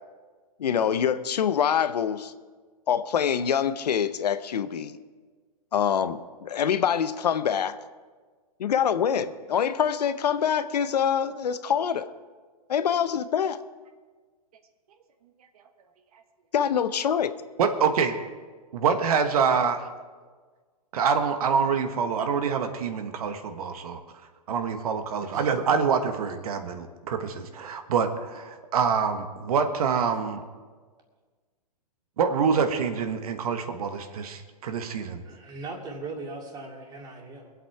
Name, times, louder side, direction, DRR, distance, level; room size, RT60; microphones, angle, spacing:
voice 1, 0.6-2.3 2.9-4.9 5.7-7.7 8.6-12.1 12.7-13.6 16.5-17.3, left 8 dB, 80° left, 13 dB, 0.8 m, -25 dB
voice 2, 17.6-18.2 18.7-19.9 20.9-24.0 24.5-30.4 32.2-35.2, right 6 dB, 65° right, 7 dB, 1.3 m, -26 dB
voice 3, 35.2-37.5, right 3 dB, 20° right, 0 dB, 2.5 m, -39 dB
22.5 x 8.3 x 4.7 m, 1.5 s
hypercardioid pair, 140°, 20 cm